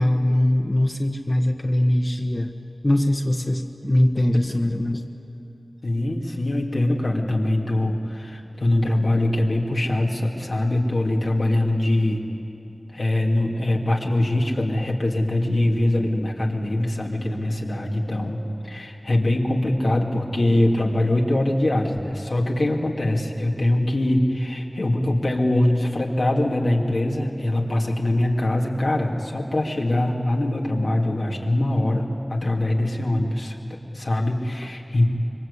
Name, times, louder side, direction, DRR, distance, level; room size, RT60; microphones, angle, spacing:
voice 1, 0.0-2.5 2.8-5.0, left 1 dB, 35° left, 4 dB, 1.3 m, -21 dB
voice 2, 5.8-12.2 12.9-18.4 18.6-33.6 33.9-35.1, left 1 dB, 85° left, -1 dB, 2.7 m, -23 dB
25.5 x 23.5 x 8.4 m, 2.8 s
wide cardioid pair, 45°, 0 cm